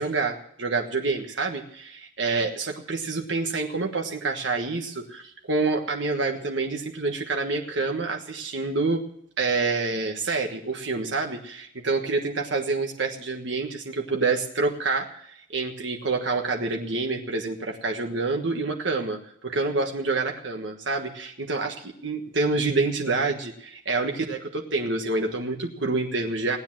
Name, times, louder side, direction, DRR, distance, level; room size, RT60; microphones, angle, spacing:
voice 1, 0.0-9.0 9.4-19.2 19.4-26.6, right 3 dB, 70° right, 2 dB, 1.4 m, -27 dB
17.5 x 9.8 x 7.5 m, 0.67 s
head